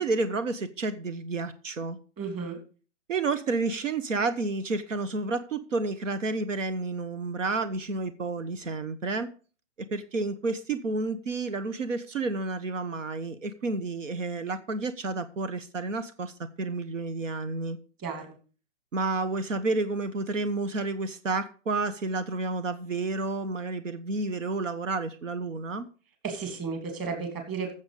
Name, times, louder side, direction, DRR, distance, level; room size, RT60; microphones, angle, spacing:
voice 1, 0.0-2.0 3.1-9.3 9.8-17.8 18.9-25.9, right 3 dB, 80° right, 1.2 m, -30 dB
voice 2, 2.2-2.6 18.0-18.4 26.2-27.7, right 5 dB, 20° right, 3.0 m, -33 dB
14.5 x 7.3 x 5.1 m
hypercardioid pair, 150°, 38 cm